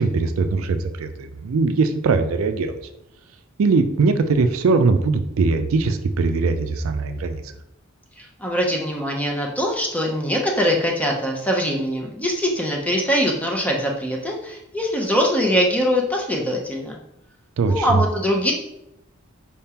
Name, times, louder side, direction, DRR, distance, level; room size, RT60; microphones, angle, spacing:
voice 1, 0.0-2.8 3.6-7.4 17.6-18.0, right 4 dB, 80° right, 8 dB, 0.4 m, -20 dB
voice 2, 8.2-17.0 17.6-18.5, equal, 5° left, 0 dB, 0.6 m, -22 dB
4.6 x 3.5 x 2.8 m, 0.82 s
head